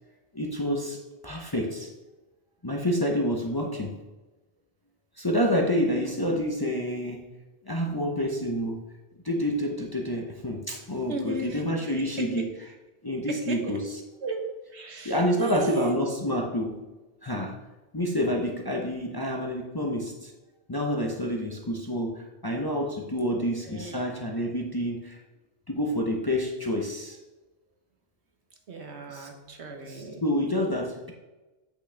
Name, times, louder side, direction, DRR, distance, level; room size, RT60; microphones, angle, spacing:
voice 1, 0.3-1.9 2.6-3.9 5.2-7.3 7.6-8.8 9.2-12.5 13.0-14.0 15.0-16.8 17.2-17.6 17.9-20.3 20.7-25.2 25.7-27.2 29.1-29.3 29.9-31.1, equal, 25° left, 0 dB, 0.7 m, -28 dB
voice 2, 11.1-11.7 12.2-12.3 13.5-13.6 14.2-16.3 23.2-24.0 28.7-30.2, right 2 dB, 70° right, 3 dB, 1.4 m, -35 dB
8.1 x 6.0 x 3.4 m, 1.1 s
omnidirectional pair, 1.2 m